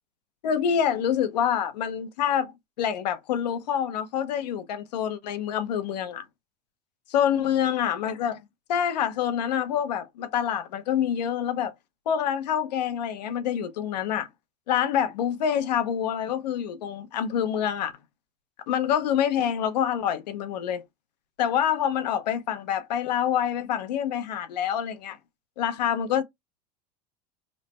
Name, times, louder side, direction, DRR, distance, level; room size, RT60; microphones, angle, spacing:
voice 1, 0.4-6.2 7.1-8.4 8.7-11.7 12.1-14.3 14.7-17.9 18.7-20.8 21.4-25.2 25.6-26.2, left 9 dB, 85° left, 0.7 m, -26 dB
3.2 x 2.0 x 4.1 m
supercardioid pair, 110°, 21 cm